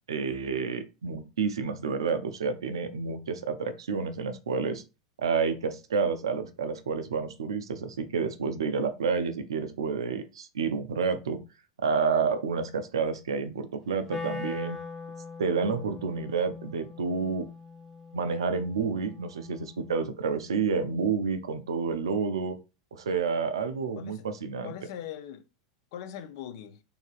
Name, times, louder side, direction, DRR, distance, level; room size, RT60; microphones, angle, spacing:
voice 1, 0.1-4.8 5.2-11.4 11.8-14.8 15.4-17.5 18.1-22.6 22.9-24.7, right 5 dB, 70° right, 0.4 m, -29 dB
Wind instrument woodwind instrument, 14.1-20.1, left 3 dB, 15° right, 0.8 m, -42 dB
voice 2, 24.6-25.5 25.9-26.8, left 10 dB, 55° left, 0.4 m, -41 dB
2.7 x 2.5 x 2.4 m
figure-of-eight pair, 85°, 3 cm